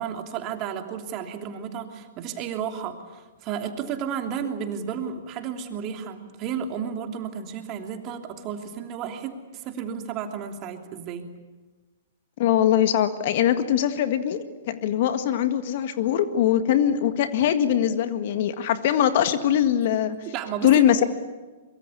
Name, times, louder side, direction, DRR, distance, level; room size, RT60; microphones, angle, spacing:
voice 1, 0.0-11.3 20.3-20.8, right 7 dB, 35° right, 4 dB, 3.0 m, -32 dB
voice 2, 12.4-20.2 20.6-21.1, left 10 dB, 55° left, 9 dB, 1.8 m, -22 dB
24.0 x 23.0 x 8.5 m, 1.3 s
hypercardioid pair, 115°, 0 cm